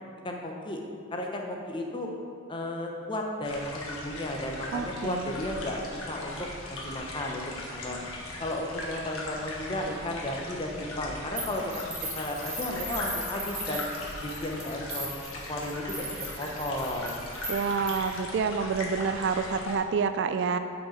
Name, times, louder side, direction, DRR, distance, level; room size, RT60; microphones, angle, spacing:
voice 1, 0.2-0.8 1.1-2.1 2.5-6.5 6.8-7.4 7.7-8.0 8.4-13.8 14.2-15.1 15.3-16.1 16.4-17.1, left 1 dB, 20° left, 1 dB, 0.8 m, -34 dB
sound 1, 3.4-19.8, left 2 dB, 80° left, 1.4 m, -39 dB
voice 2, 4.7-5.3 17.5-20.6, right 5 dB, 55° right, 9 dB, 0.3 m, -28 dB
sound 2, 11.4-18.2, right 1 dB, 30° right, 1.8 m, -38 dB
8.9 x 5.2 x 5.0 m, 2.4 s
head